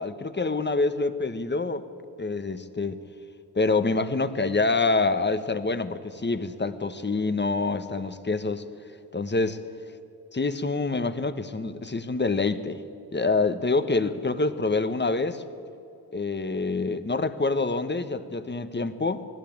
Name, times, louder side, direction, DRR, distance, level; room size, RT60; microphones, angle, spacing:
voice 1, 0.0-1.9 2.2-3.0 3.5-8.6 9.1-9.6 10.3-12.8 13.1-15.4 16.1-19.3, left 3 dB, 25° left, 11 dB, 1.2 m, -26 dB
19.0 x 15.5 x 8.8 m, 2.7 s
cardioid pair, 70°, 39 cm